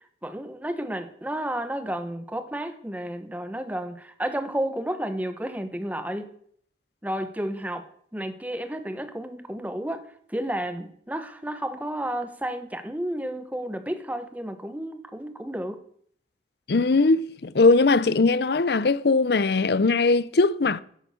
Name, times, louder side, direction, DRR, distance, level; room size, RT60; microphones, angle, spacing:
voice 1, 0.2-6.3 7.0-15.8, right 1 dB, 10° right, 1.0 m, -32 dB
voice 2, 16.7-20.8, left 3 dB, 65° left, 0.6 m, -20 dB
11.0 x 10.0 x 6.9 m
head